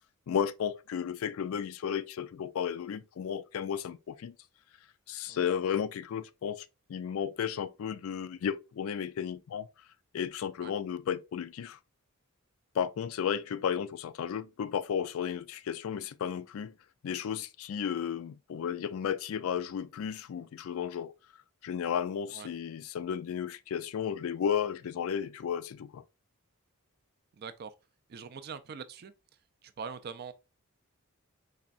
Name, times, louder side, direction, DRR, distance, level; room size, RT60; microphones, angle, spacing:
voice 1, 0.3-4.3 5.1-9.7 10.1-11.8 12.7-16.7 17.0-21.1 21.6-26.0, left 8 dB, 70° left, 0.3 m, -33 dB
voice 2, 27.3-27.7 28.1-29.1 29.6-30.3, right 6 dB, 45° right, 0.3 m, -43 dB
4.1 x 3.4 x 2.4 m
head